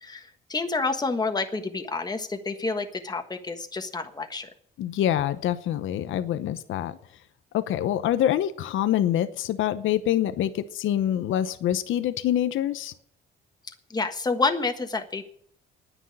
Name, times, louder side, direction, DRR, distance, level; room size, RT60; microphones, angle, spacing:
voice 1, 0.0-4.5 13.9-15.3, left 3 dB, 20° left, 6 dB, 1.5 m, -29 dB
voice 2, 4.8-7.0 7.5-12.9, left 11 dB, 80° left, 13 dB, 0.9 m, -25 dB
10.0 x 9.2 x 9.8 m, 0.65 s
cardioid pair, 90°, 20 cm